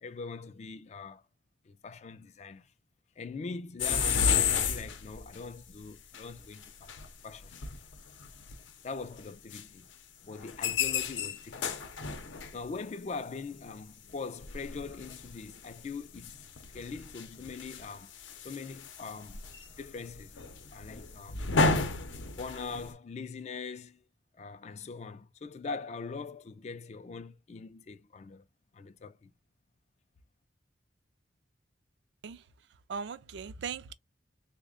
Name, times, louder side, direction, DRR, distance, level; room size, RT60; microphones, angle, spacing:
voice 1, 0.0-1.2 1.6-2.7 3.2-7.6 8.8-9.9 10.2-11.8 12.5-16.4 16.7-18.1 18.4-19.4 19.8-20.4 20.7-21.4 22.3-24.0 24.4-28.5 28.7-29.3, left 4 dB, 35° left, 0.3 m, -42 dB
sound 1, 3.8-5.4 6.1-6.2 6.6-7.1 7.4-8.6 9.2-9.3 9.5-9.6 10.3-12.6 14.1-14.2 14.4-15.7 16.1-22.9, left 5 dB, 80° left, 0.6 m, -32 dB
voice 2, 32.2-33.9, right 6 dB, 65° right, 0.4 m, -40 dB
3.5 x 2.1 x 3.6 m
head